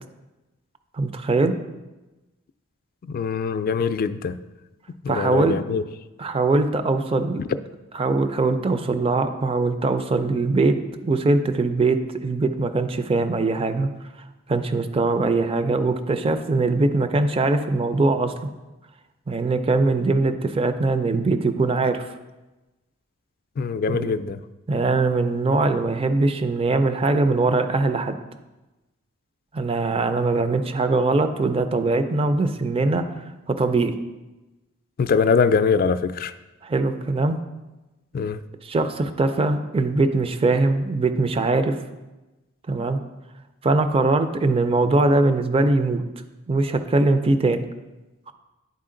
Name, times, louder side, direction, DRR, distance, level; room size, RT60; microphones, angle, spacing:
voice 1, 1.0-1.5 5.1-5.6 6.2-7.4 7.9-10.8 11.0-13.9 14.5-18.5 19.3-22.1 23.9-24.1 24.7-28.2 29.5-33.1 33.5-33.9 36.6-37.4 38.6-41.8 42.7-43.0 43.6-46.0 46.5-47.6, right 3 dB, 25° right, 9 dB, 0.4 m, -21 dB
voice 2, 3.0-4.4 5.0-5.8 7.4-7.5 23.6-24.4 35.0-36.3 38.1-38.4, left 5 dB, 40° left, 11 dB, 0.3 m, -22 dB
10.5 x 4.4 x 3.8 m, 1.1 s
head